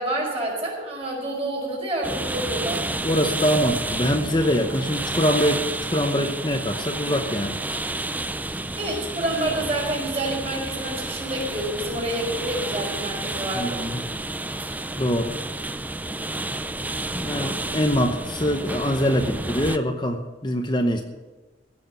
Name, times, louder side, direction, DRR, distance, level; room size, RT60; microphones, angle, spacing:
voice 1, 0.0-2.9 8.8-13.8, right 1 dB, 35° right, -2 dB, 5.0 m, -28 dB
sound 1, 2.0-19.8, right 2 dB, 10° right, 0.4 m, -30 dB
voice 2, 3.0-7.6 13.5-14.0 15.0-15.3 17.1-21.0, equal, 25° left, 4 dB, 0.9 m, -24 dB
16.0 x 6.5 x 9.0 m, 1.2 s
head